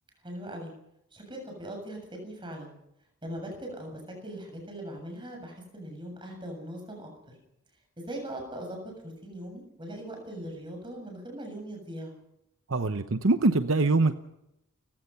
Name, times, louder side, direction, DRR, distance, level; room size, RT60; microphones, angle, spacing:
voice 1, 0.2-0.7 1.1-2.8 3.2-7.1 8.0-12.2, right 1 dB, 20° right, 2 dB, 7.5 m, -40 dB
voice 2, 12.7-14.1, right 3 dB, 60° right, 9 dB, 0.9 m, -23 dB
30.0 x 16.5 x 5.7 m, 0.83 s
head